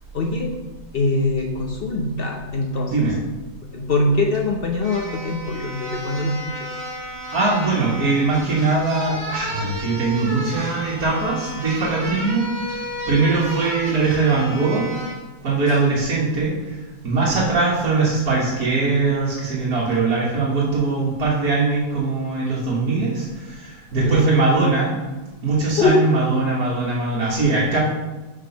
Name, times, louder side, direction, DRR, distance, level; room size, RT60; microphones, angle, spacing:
voice 1, 0.1-0.6 0.9-3.1 3.7-6.8 23.9-24.3 25.8-26.0, left 2 dB, 60° left, 2 dB, 0.6 m, -22 dB
voice 2, 2.9-3.2 7.3-15.0 15.4-24.9 25.4-27.8, right 3 dB, 60° right, -8 dB, 1.8 m, -21 dB
sound 1, 4.3-4.4 4.8-15.2 15.7-15.8, right 1 dB, 45° right, 1.9 m, -33 dB
6.0 x 4.8 x 5.7 m, 1.1 s
omnidirectional pair, 1.8 m